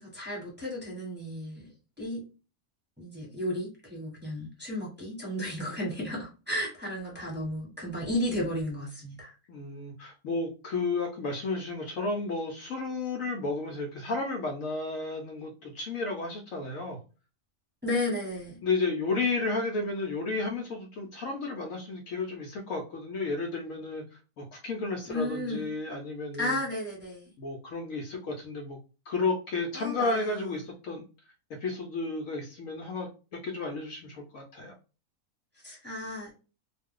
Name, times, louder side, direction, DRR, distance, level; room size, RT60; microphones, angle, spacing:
voice 1, 0.0-2.2 3.0-9.3 17.8-18.6 25.1-25.7 26.4-27.3 29.7-30.4 35.6-36.4, left 1 dB, 10° right, -4 dB, 1.1 m, -33 dB
voice 2, 9.5-17.0 18.6-24.0 24.4-26.6 27.4-28.8 29.1-31.0 31.6-34.7, left 3 dB, 70° left, 2 dB, 0.9 m, -32 dB
2.4 x 2.2 x 3.6 m, 0.33 s
omnidirectional pair, 1.6 m